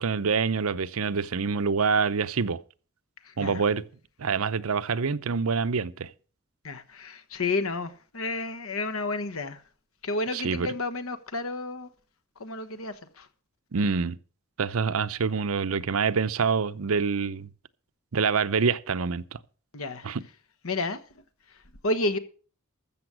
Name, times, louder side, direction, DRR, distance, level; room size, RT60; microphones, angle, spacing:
voice 1, 0.0-2.6 3.4-3.8 4.2-6.1 10.3-10.7 13.7-14.2 14.6-17.5 18.1-19.4 20.0-20.2, right 5 dB, 75° right, 0.7 m, -26 dB
voice 2, 3.2-3.6 6.6-9.6 10.0-11.9 12.4-13.3 19.7-20.1 20.6-21.0 21.5-21.6 21.8-22.2, left 2 dB, 75° left, 1.2 m, -31 dB
14.0 x 7.0 x 6.1 m
head